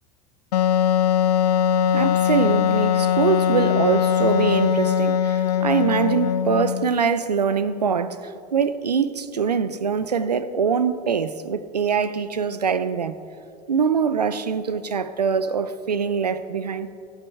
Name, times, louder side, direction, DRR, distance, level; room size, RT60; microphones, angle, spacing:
Wind instrument woodwind instrument, 0.5-7.0, left 9 dB, 80° left, 0.4 m, -21 dB
voice 1, 1.9-13.2 13.7-16.9, right 6 dB, 85° right, 0.6 m, -23 dB
23.5 x 8.2 x 4.7 m
figure-of-eight pair, 80°, 20 cm